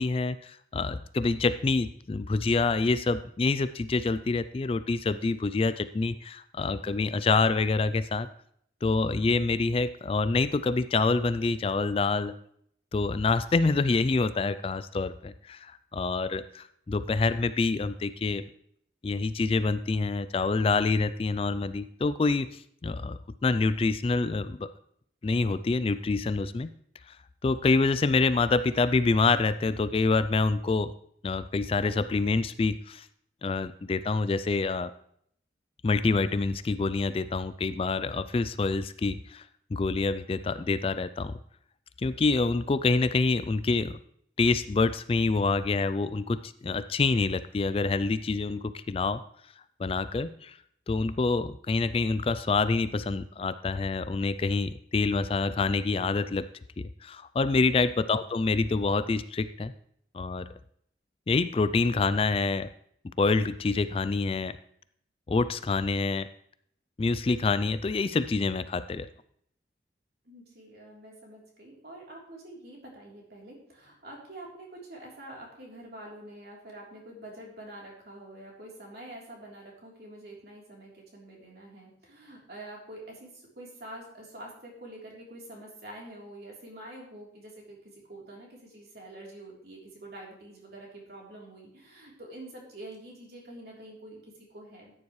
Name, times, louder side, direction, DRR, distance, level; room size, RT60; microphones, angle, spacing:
voice 1, 0.0-8.3 8.8-12.3 12.9-18.4 19.0-24.7 25.2-26.7 27.1-27.2 27.4-30.9 31.2-33.1 33.4-34.9 35.8-39.5 39.7-41.4 42.0-44.0 44.4-49.2 49.8-50.6 50.9-56.5 56.8-59.7 60.1-60.5 61.3-62.7 63.2-64.6 65.3-66.3 67.0-69.1, left 3 dB, 30° left, 13 dB, 0.3 m, -26 dB
voice 2, 70.2-94.9, right 1 dB, 55° right, -2 dB, 3.5 m, -46 dB
14.0 x 9.7 x 3.2 m, 0.67 s
head